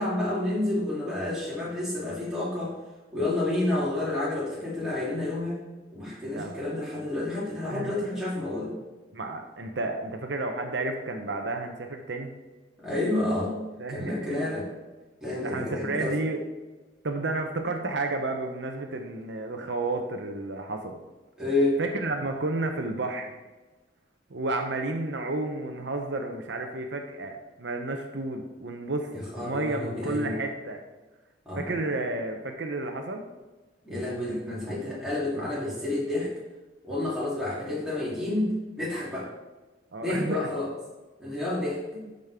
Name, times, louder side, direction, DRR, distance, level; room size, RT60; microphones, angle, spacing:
voice 1, 0.0-2.7 3.1-5.6 5.9-8.7 12.8-13.6 13.9-14.7 15.2-16.2 21.4-21.8 29.1-30.4 31.4-31.8 33.8-36.3 36.8-39.3 40.0-40.7 41.2-41.8, left 2 dB, 5° right, -8 dB, 2.9 m, -29 dB
voice 2, 6.3-6.7 7.7-7.9 9.1-12.3 13.8-14.4 15.4-16.4 17.0-21.0 21.8-23.4 24.3-29.1 29.4-30.8 31.6-33.2 39.9-40.5, right 2 dB, 70° right, 4 dB, 0.8 m, -31 dB
12.0 x 5.3 x 3.5 m, 1.2 s
head